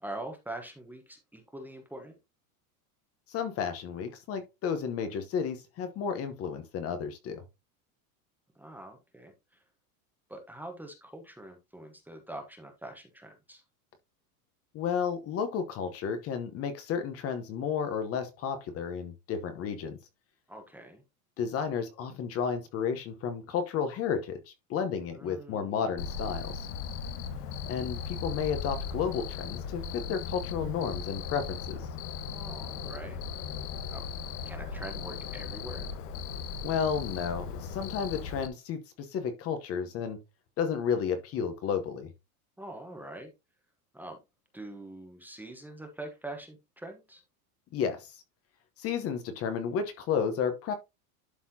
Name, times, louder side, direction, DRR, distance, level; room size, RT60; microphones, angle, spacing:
voice 1, 0.0-2.1 8.5-9.6 10.3-13.6 20.5-21.0 25.1-25.9 32.3-33.2 33.9-34.0 34.4-35.9 42.6-43.3 43.9-44.2 44.5-47.2, right 1 dB, 5° right, 1.0 m, -44 dB
voice 2, 3.3-7.4 14.7-20.0 21.4-26.7 27.7-31.9 36.6-40.2 40.6-42.1 47.7-48.2 48.8-50.7, left 7 dB, 30° left, 1.0 m, -32 dB
Cricket, 26.0-38.5, left 6 dB, 80° left, 1.2 m, -37 dB
11.5 x 4.2 x 2.7 m
supercardioid pair, 155°, 45 cm